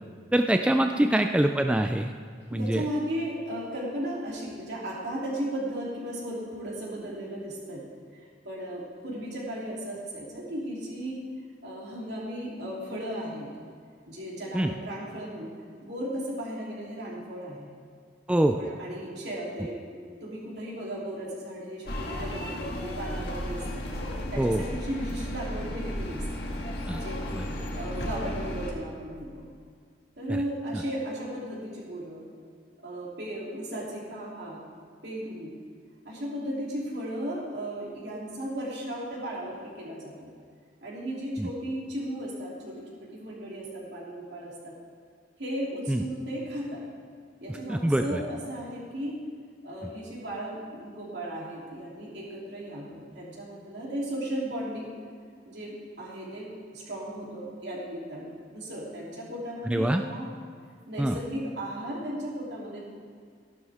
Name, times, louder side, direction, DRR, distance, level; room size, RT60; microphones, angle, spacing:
voice 1, 0.3-2.1 2.5-2.9 14.5-14.7 18.3-18.6 24.4-24.6 26.9-27.0 27.3-27.4 30.7-30.8 41.4-41.5 45.9-46.0 47.7-48.2 59.7-60.0 61.0-61.2, right 1 dB, 5° right, 5 dB, 0.3 m, -24 dB
voice 2, 2.5-7.8 8.1-11.2 11.6-13.5 14.1-15.5 15.8-17.7 18.5-23.8 24.3-26.2 27.0-27.2 27.7-29.4 30.2-32.3 32.8-34.6 35.0-35.5 36.0-40.3 40.8-44.7 45.4-46.8 47.4-49.2 49.6-54.9 55.4-60.3 60.9-62.8, right 1 dB, 65° right, -5 dB, 3.3 m, -36 dB
sound 1, 21.8-28.7, left 1 dB, 65° left, 1.6 m, -34 dB
14.5 x 11.5 x 3.6 m, 2.1 s
head